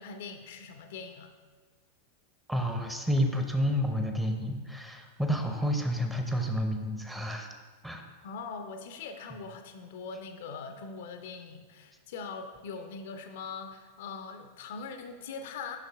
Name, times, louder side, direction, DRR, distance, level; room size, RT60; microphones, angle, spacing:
voice 1, 0.0-1.3 8.2-15.8, left 5 dB, 55° left, 7 dB, 0.4 m, -41 dB
voice 2, 2.5-7.5 7.8-8.0, equal, 5° right, 4 dB, 0.6 m, -30 dB
5.9 x 5.5 x 3.5 m, 1.4 s
figure-of-eight pair, 90°, 0 cm